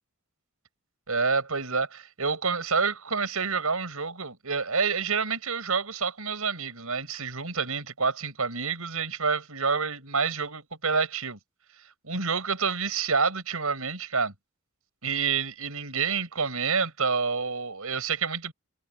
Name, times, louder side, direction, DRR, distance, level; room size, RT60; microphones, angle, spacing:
voice 1, 1.1-11.4 12.0-14.3 15.0-18.5, right 5 dB, 85° right, 5.2 m, -28 dB
head